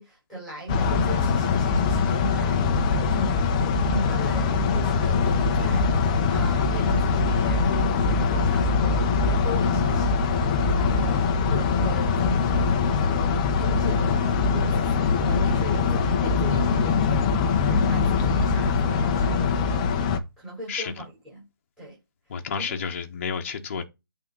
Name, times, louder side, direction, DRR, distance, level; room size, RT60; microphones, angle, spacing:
voice 1, 0.0-5.9 6.3-10.3 10.7-17.3 17.6-19.4 20.4-21.4 21.8-22.0 22.3-22.8, right 2 dB, 5° right, 4.0 m, -38 dB
sound 1, 0.7-20.2, left 5 dB, 20° left, 0.7 m, -22 dB
voice 2, 22.3-23.9, left 6 dB, 35° left, 1.2 m, -30 dB
8.5 x 3.8 x 4.0 m
hypercardioid pair, 165°, 12 cm